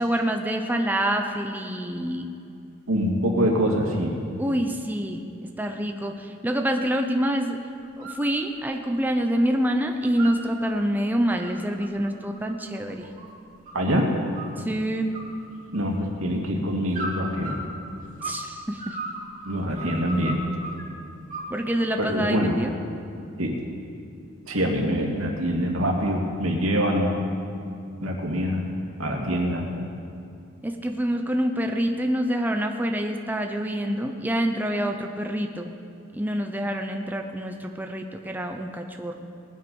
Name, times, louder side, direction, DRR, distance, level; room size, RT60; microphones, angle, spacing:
voice 1, 0.0-2.3 4.4-5.2 5.6-7.6 8.0-13.1 14.6-15.1 18.2-19.0 21.5-22.7 29.3-29.4 30.6-35.7 36.1-39.1, equal, 10° right, 4 dB, 0.7 m, -26 dB
voice 2, 2.9-4.2 13.7-14.1 15.7-17.6 19.4-20.4 22.0-22.6 23.4-23.5 24.5-27.2 28.0-28.7 29.0-29.6, equal, 85° right, 0 dB, 2.3 m, -24 dB
sound 1, 7.8-8.2 8.6-9.5 9.8-10.7 11.2-13.9 14.3-14.8 15.1-16.1 16.9-18.5 18.8-20.8 21.3-22.0, right 2 dB, 40° right, 2.9 m, -37 dB
19.5 x 9.5 x 5.4 m, 2.5 s
head